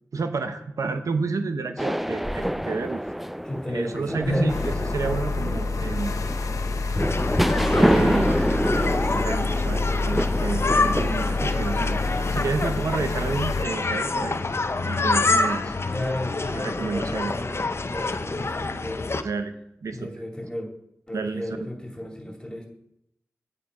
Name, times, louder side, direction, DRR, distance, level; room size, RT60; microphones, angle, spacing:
voice 1, 0.1-3.0 3.7-4.5 4.9-6.1 7.7-12.0 12.3-14.4 14.8-15.8 16.5-17.3 19.2-19.5 19.8-20.1 21.1-21.5, right 4 dB, 85° right, 8 dB, 0.7 m, -30 dB
sound 1, 1.8-12.3, equal, ahead, 0.3 m, -27 dB
voice 2, 3.4-4.6 15.8-19.0 19.9-20.7 21.1-22.7, left 1 dB, 15° left, 1 dB, 2.4 m, -32 dB
sound 2, 4.5-13.6, left 3 dB, 85° left, 0.8 m, -27 dB
sound 3, 7.0-19.2, left 3 dB, 50° left, 0.7 m, -27 dB
8.9 x 8.4 x 4.8 m, 0.77 s
cardioid pair, 50°, 5 cm